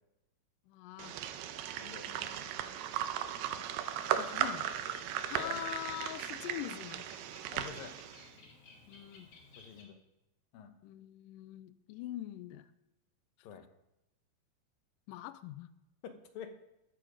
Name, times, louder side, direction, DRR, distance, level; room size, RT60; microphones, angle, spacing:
voice 1, 0.7-1.2 1.8-2.7 4.1-4.7 5.3-7.0 8.9-9.3 10.8-12.7 15.1-15.7, left 13 dB, 85° left, 13 dB, 1.9 m, -44 dB
sound 1, 1.0-8.3, right 10 dB, 85° right, 2.7 m, -37 dB
Bird, 3.8-9.8, left 3 dB, 55° left, 3.2 m, -58 dB
voice 2, 7.5-8.0 9.6-10.0 10.5-10.7 13.4-13.7 16.0-16.6, left 7 dB, 70° left, 7 dB, 2.6 m, -47 dB
13.5 x 10.0 x 5.1 m, 0.90 s
omnidirectional pair, 4.6 m